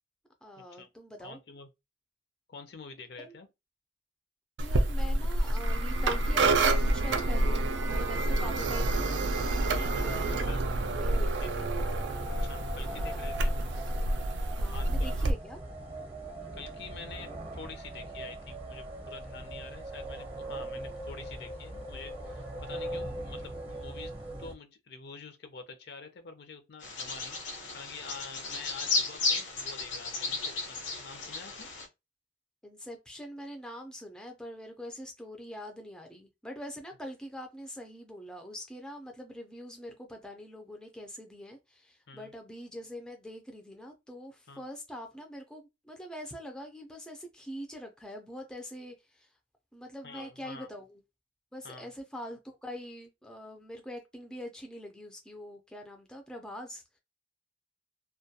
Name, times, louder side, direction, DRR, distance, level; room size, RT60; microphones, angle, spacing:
voice 1, 0.4-1.4 3.2-3.4 4.6-9.2 10.0-10.5 10.9-11.7 12.8-13.3 14.5-15.6 32.6-49.3 49.7-51.0 51.5-56.8, equal, 5° left, 0.4 m, -44 dB
voice 2, 1.2-1.7 2.5-3.5 9.7-10.1 10.5-10.6 11.2-11.5 12.4-13.5 14.7-15.3 16.5-24.1 24.4-31.7 42.1-42.3 44.5-44.6 50.0-50.7 51.6-51.9, left 4 dB, 60° left, 0.5 m, -47 dB
sound 1, 4.6-15.3, right 2 dB, 70° right, 0.4 m, -28 dB
sound 2, 9.3-24.5, right 1 dB, 30° right, 0.7 m, -41 dB
Bird vocalization bird call bird song, 26.8-31.8, left 3 dB, 85° left, 0.8 m, -34 dB
2.2 x 2.2 x 2.7 m
head